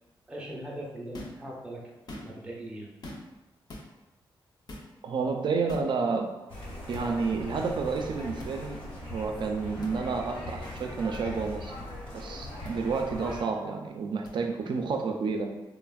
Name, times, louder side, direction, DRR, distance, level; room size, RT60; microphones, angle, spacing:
voice 1, 0.3-2.9, right 1 dB, 10° right, -3 dB, 0.5 m, -40 dB
sound 1, 1.1-1.4 1.9-2.5 3.0-3.4 3.7-3.9 4.7-4.9 5.7-5.9 6.9-7.1 8.4-8.5 9.8-10.0 11.1-11.2 12.6-12.8 14.3-14.4, left 1 dB, 50° left, 0.5 m, -43 dB
voice 2, 5.0-6.3 6.9-11.7 12.1-15.5, right 4 dB, 60° right, 4 dB, 0.4 m, -30 dB
sound 2, 6.5-13.4, left 1 dB, 75° left, 0.9 m, -40 dB
3.2 x 2.0 x 2.3 m, 1.0 s
cardioid pair, 100°, 9 cm